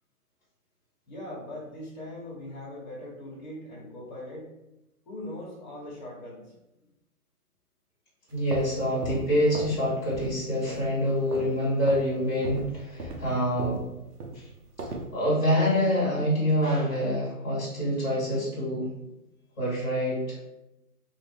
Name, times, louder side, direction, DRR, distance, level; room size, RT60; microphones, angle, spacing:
voice 1, 1.1-4.5 5.1-6.5, left 1 dB, 30° left, -5 dB, 0.9 m, -40 dB
voice 2, 8.3-13.8 14.3-14.5 15.1-18.9 19.6-20.4, equal, 5° left, -10 dB, 1.0 m, -26 dB
sound 1, 8.3-9.8 10.1-10.4 10.7-11.6 11.9-12.1 12.4-15.1, right 2 dB, 75° right, 0.9 m, -37 dB
3.1 x 2.4 x 3.3 m, 0.90 s
hypercardioid pair, 170°, 46 cm